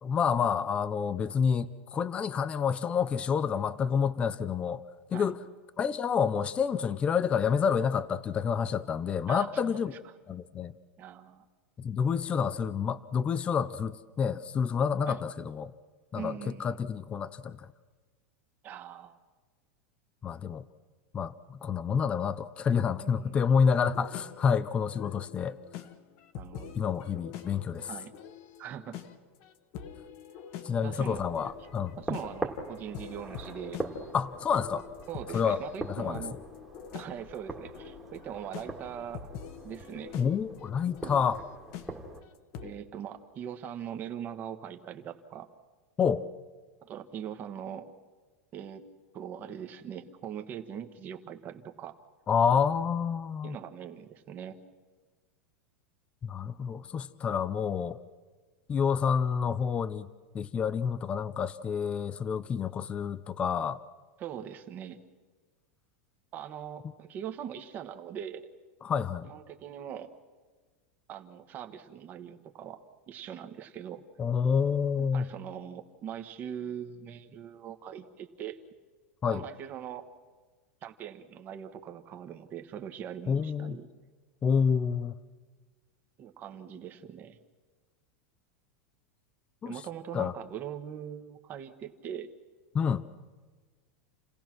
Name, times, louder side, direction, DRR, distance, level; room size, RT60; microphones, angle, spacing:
voice 1, 0.0-4.8 5.1-5.4 5.8-9.9 10.3-10.7 11.8-15.7 16.1-16.3 16.6-17.7 20.2-20.6 21.1-25.6 26.7-27.9 30.6-32.2 34.1-34.9 35.3-35.6 35.9-36.2 40.1-41.4 46.0-46.2 52.3-53.6 56.3-58.0 58.7-60.1 60.3-63.8 68.8-69.3 74.2-75.3 79.2-79.4 83.3-83.8 84.4-85.1 89.6-89.7 90.1-90.3 92.7-93.0, left 6 dB, 15° left, 14 dB, 0.5 m, -28 dB
voice 2, 9.3-10.1 11.0-11.4 15.1-15.2 16.1-16.8 18.6-19.2 23.0-23.7 26.4-26.8 27.9-28.1 28.6-29.0 30.8-31.2 32.0-33.8 35.1-36.3 36.9-39.3 39.6-40.1 41.0-41.1 42.6-45.5 46.8-47.9 48.5-48.8 49.1-51.9 53.4-54.6 64.2-65.0 66.3-68.5 69.2-70.1 71.1-72.8 73.1-74.0 75.0-78.6 79.3-80.1 80.8-83.9 86.2-87.4 89.6-92.3, right 9 dB, 25° right, 7 dB, 1.4 m, -41 dB
sound 1, 23.9-42.7, left 8 dB, 40° left, 1.2 m, -46 dB
sound 2, 31.0-42.2, right 1 dB, 5° right, 1.8 m, -42 dB
29.5 x 17.5 x 6.1 m, 1.4 s
supercardioid pair, 170°, 8 cm